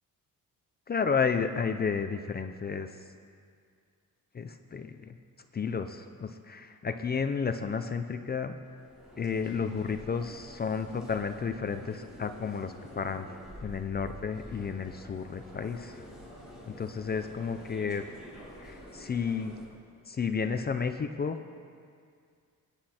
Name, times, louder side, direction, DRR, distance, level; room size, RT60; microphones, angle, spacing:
voice 1, 0.9-2.9 4.3-5.1 5.5-8.6 9.2-13.3 13.6-16.0 16.7-18.1 18.6-19.6 20.1-21.4, left 5 dB, 30° left, 8 dB, 0.5 m, -32 dB
sound 1, 8.6-19.7, equal, ahead, 4.3 m, -48 dB
22.0 x 9.8 x 4.3 m, 2.2 s
wide cardioid pair, 165°, 34 cm